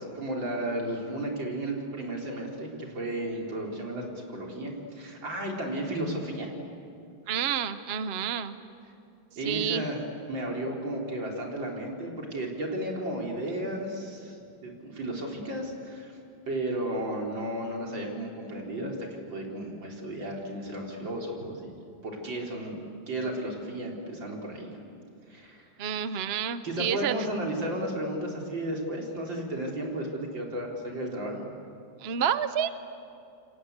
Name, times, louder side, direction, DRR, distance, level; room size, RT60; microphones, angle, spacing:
voice 1, 0.0-6.5 9.4-10.0 10.3-14.4 14.6-16.1 16.5-21.7 22.0-22.8 23.1-24.8 25.3-25.6 26.6-31.5, right 1 dB, 70° right, -1 dB, 4.6 m, -33 dB
voice 2, 7.3-8.5 9.4-9.9 25.8-27.1 32.0-32.7, right 8 dB, 50° right, 11 dB, 0.8 m, -29 dB
28.5 x 24.0 x 8.2 m, 2.5 s
omnidirectional pair, 2.1 m